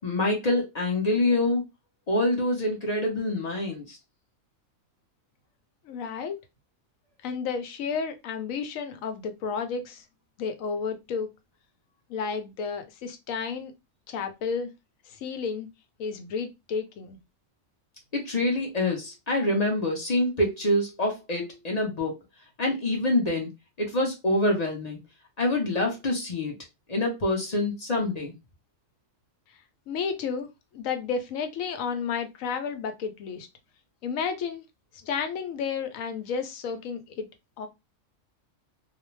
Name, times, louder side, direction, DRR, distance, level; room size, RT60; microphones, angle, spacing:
voice 1, 0.0-1.6 2.1-4.0 18.1-22.1 22.6-23.5 23.8-25.0 25.4-26.5 26.9-28.3, left 1 dB, 45° left, 0.6 m, -26 dB
voice 2, 5.8-6.4 7.2-10.0 10.4-11.3 12.1-13.7 14.1-14.7 15.1-15.7 16.0-17.2 29.9-30.5 30.7-33.5 34.0-34.6 35.0-37.3 37.6-37.7, left 6 dB, 80° left, 1.0 m, -32 dB
2.4 x 2.1 x 3.0 m
omnidirectional pair, 1.4 m